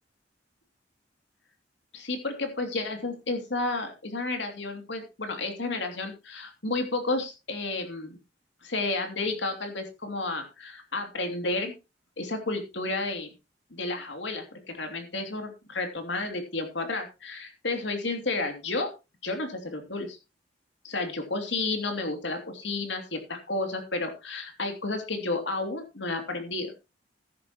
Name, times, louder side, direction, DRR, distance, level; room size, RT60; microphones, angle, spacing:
voice 1, 1.9-8.2 8.6-11.7 12.2-13.3 13.7-18.9 19.2-20.2 20.8-26.7, left 2 dB, 70° left, 5 dB, 2.9 m, -31 dB
13.5 x 11.5 x 3.0 m, 0.27 s
head